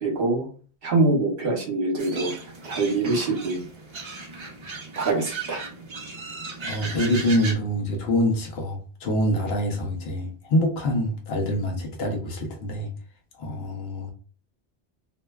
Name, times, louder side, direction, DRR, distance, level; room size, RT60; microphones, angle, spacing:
voice 1, 0.0-0.5 0.8-2.3 2.6-3.6 5.0-5.6, right 3 dB, 65° right, 0.9 m, -24 dB
sound 1, 2.0-7.5, right 3 dB, 40° right, 0.4 m, -36 dB
voice 2, 6.6-12.9 13.4-14.1, equal, 75° left, 0.9 m, -25 dB
2.6 x 2.1 x 2.2 m
omnidirectional pair, 1.1 m